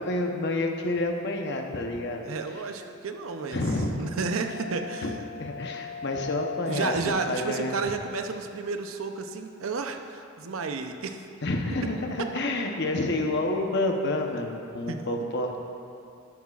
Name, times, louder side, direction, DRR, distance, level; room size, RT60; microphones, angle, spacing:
voice 1, 0.0-2.2 3.5-4.0 5.0-7.8 11.4-15.5, left 2 dB, 55° left, 2 dB, 0.9 m, -29 dB
sound 1, 1.8-7.1, left 5 dB, 25° left, 1.1 m, -41 dB
voice 2, 2.2-3.6 4.0-5.1 6.7-11.2 14.9-15.3, right 4 dB, 80° right, 6 dB, 0.7 m, -32 dB
12.5 x 11.5 x 2.4 m, 2.6 s
head